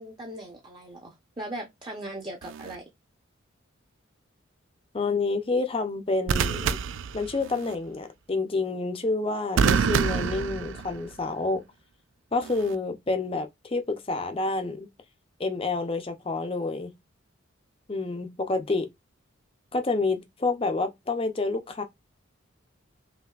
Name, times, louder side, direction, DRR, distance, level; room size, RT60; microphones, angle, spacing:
voice 1, 0.0-2.8, right 1 dB, 20° right, 0.7 m, -39 dB
sound 1, 2.4-2.8 6.3-7.8 9.6-11.2 12.4-12.8, right 6 dB, 70° right, 0.3 m, -27 dB
voice 2, 4.9-6.8 7.1-11.6 12.3-14.9 15.4-16.9 17.9-18.9 19.7-21.8, left 3 dB, 25° left, 0.5 m, -28 dB
5.6 x 2.7 x 2.4 m
head